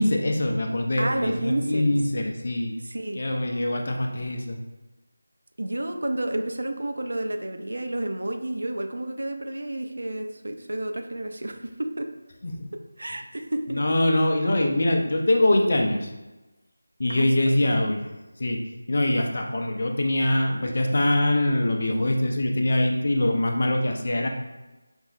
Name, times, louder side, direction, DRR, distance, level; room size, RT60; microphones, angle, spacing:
voice 1, 0.0-2.7 3.1-4.6 12.4-12.7 13.7-16.1 17.0-18.0 18.4-18.6 18.9-24.3, left 1 dB, 45° left, 3 dB, 0.4 m, -23 dB
voice 2, 1.0-2.0 2.8-3.2 5.6-12.1 13.0-14.0 17.1-17.9, right 1 dB, 65° right, 5 dB, 0.4 m, -31 dB
5.2 x 2.0 x 2.4 m, 1.1 s
figure-of-eight pair, 165°, 0 cm